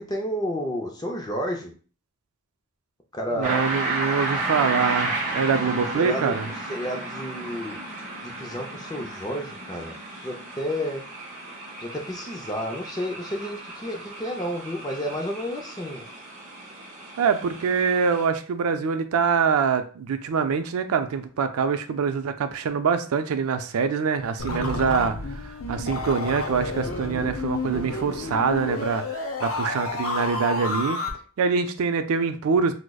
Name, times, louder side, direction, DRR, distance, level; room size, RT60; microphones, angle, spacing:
voice 1, 0.0-1.7 3.1-3.7 5.7-6.4 6.7-7.8 8.2-11.0 11.8-16.0, equal, 15° left, 2 dB, 0.4 m, -31 dB
voice 2, 3.3-6.5 17.2-25.2 25.4-31.0 31.4-32.7, right 5 dB, 80° right, 9 dB, 0.4 m, -24 dB
sound 1, 3.4-18.2, right 2 dB, 35° right, 0.8 m, -33 dB
sound 2, 24.4-31.1, left 2 dB, 70° left, 0.7 m, -30 dB
4.7 x 2.0 x 2.2 m, 0.40 s
head